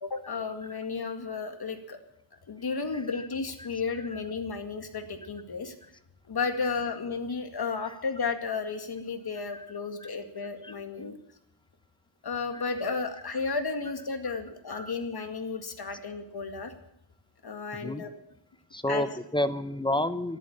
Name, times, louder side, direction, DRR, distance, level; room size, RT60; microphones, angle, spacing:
voice 1, 0.0-2.0 2.5-5.7 6.3-11.1 12.2-16.7 17.4-18.1 18.9-19.1, left 4 dB, 55° left, 6 dB, 2.1 m, -33 dB
voice 2, 2.9-3.3 3.6-3.7 3.9-4.2 7.9-8.0 9.5-9.7 10.0-10.1 10.6-10.7 12.5-12.6 14.2-14.3 14.7-14.9 16.6-16.7 17.7-18.0 18.7-20.4, left 1 dB, 10° left, 11 dB, 0.9 m, -31 dB
13.0 x 11.5 x 8.7 m, 0.82 s
wide cardioid pair, 105°, 46 cm